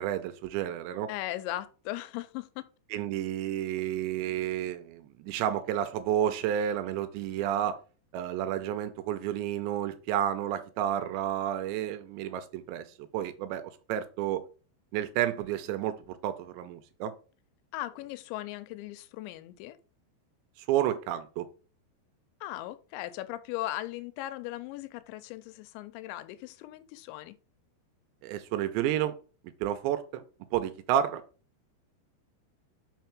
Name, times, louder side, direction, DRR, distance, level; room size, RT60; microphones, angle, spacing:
voice 1, 0.0-1.1 2.9-7.8 8.1-14.4 14.9-17.1 20.7-21.5 28.2-29.1 29.6-30.2 30.5-31.2, right 11 dB, 80° right, 2.8 m, -31 dB
voice 2, 1.1-2.7 17.7-19.8 22.4-27.4, left 15 dB, 85° left, 2.8 m, -38 dB
5.7 x 4.9 x 6.0 m
omnidirectional pair, 5.3 m